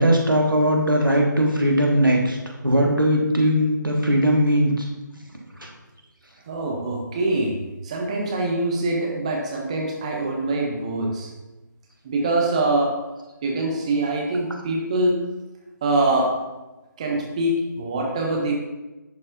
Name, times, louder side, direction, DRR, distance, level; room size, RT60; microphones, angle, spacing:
voice 1, 0.0-2.4 2.6-4.9 5.6-5.7, equal, 85° right, 0 dB, 1.3 m, -19 dB
voice 2, 6.5-7.6 7.8-11.3 12.0-12.9 13.4-15.2 15.8-16.3 17.0-18.5, right 2 dB, 20° right, 0 dB, 0.6 m, -24 dB
11.0 x 4.2 x 2.5 m, 1.1 s
figure-of-eight pair, 150°, 11 cm